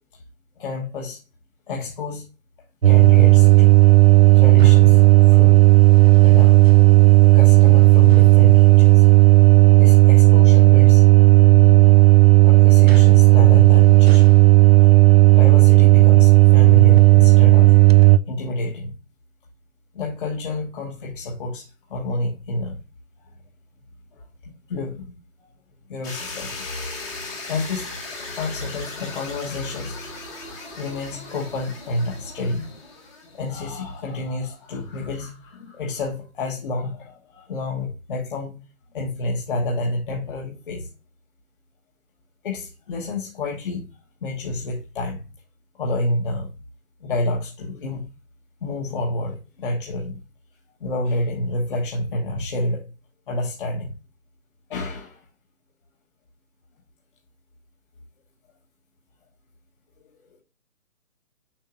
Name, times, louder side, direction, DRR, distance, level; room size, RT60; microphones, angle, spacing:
voice 1, 0.6-1.2 1.7-2.3 2.8-3.8 4.3-5.0 5.3-5.6 6.2-6.7 7.3-9.0 9.8-11.0 12.4-14.4 15.3-17.8 18.3-19.0 19.9-22.8 24.1-25.1 25.9-26.6 27.5-27.9 28.4-30.0 30.7-32.7 33.3-38.6 38.9-40.9 42.4-43.9 44.2-45.3 45.7-46.5 47.0-48.1 48.6-50.2 50.8-52.8 53.3-53.9 54.7-55.2 60.0-60.1, left 2 dB, 40° left, 1.2 m, -29 dB
sound 1, 2.8-18.2, right 21 dB, 50° right, 0.5 m, -12 dB
sound 2, 26.0-34.0, left 3 dB, 10° left, 1.0 m, -37 dB
7.3 x 5.7 x 2.5 m
hypercardioid pair, 155°, 42 cm